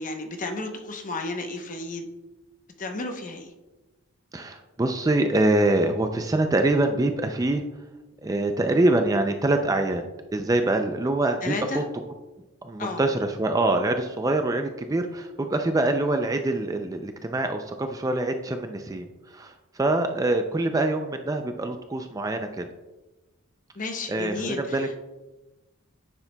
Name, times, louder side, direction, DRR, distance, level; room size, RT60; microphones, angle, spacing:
voice 1, 0.0-2.1 2.8-3.5 11.4-11.8 12.8-13.0 23.7-24.9, left 2 dB, 40° left, 4 dB, 0.8 m, -32 dB
voice 2, 4.3-7.6 8.2-10.0 10.3-11.8 12.6-22.7 24.1-25.0, right 2 dB, 15° right, 6 dB, 0.3 m, -25 dB
9.7 x 7.0 x 2.2 m, 1.1 s
head